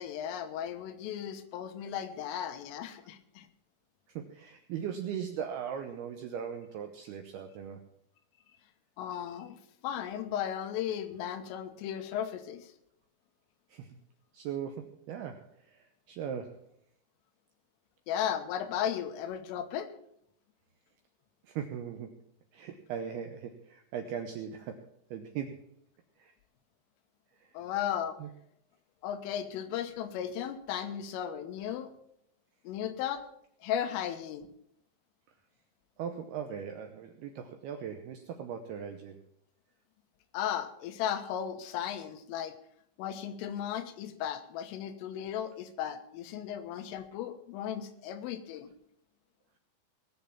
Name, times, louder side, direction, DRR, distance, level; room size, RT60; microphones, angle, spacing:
voice 1, 0.0-3.5 9.0-9.6 9.8-12.7 18.1-19.9 27.6-28.2 29.0-31.9 32.7-33.2 33.6-34.5 40.3-42.6 43.0-48.7, left 9 dB, 85° left, 8 dB, 3.7 m, -35 dB
voice 2, 4.2-7.8 13.7-13.9 14.3-16.6 21.4-22.2 22.5-25.6 26.2-26.3 27.4-27.5 28.2-28.3 36.0-39.2, right 8 dB, 80° right, 6 dB, 2.3 m, -39 dB
19.5 x 7.0 x 7.2 m, 0.71 s
omnidirectional pair, 5.7 m